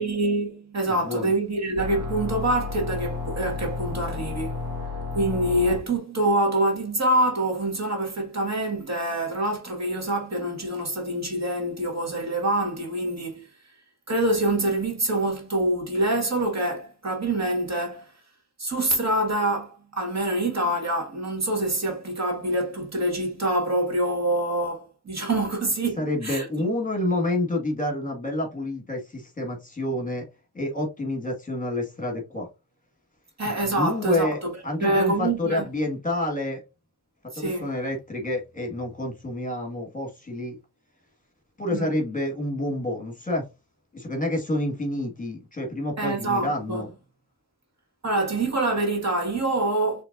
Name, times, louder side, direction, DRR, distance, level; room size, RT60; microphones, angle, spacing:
voice 1, 0.0-4.6 5.1-13.5 14.1-18.1 18.6-26.5 33.4-34.5 34.8-35.7 37.3-37.7 41.7-42.0 46.0-46.8 48.0-50.0, right 1 dB, 45° right, 1.9 m, -25 dB
voice 2, 0.9-1.3 26.0-30.3 30.5-32.5 33.4-36.6 37.4-40.6 41.6-43.4 43.9-46.9, left 1 dB, 20° left, 1.9 m, -28 dB
sound 1, 1.8-5.8, left 3 dB, 65° right, 2.1 m, -32 dB
5.7 x 3.4 x 2.6 m
wide cardioid pair, 85°, 39 cm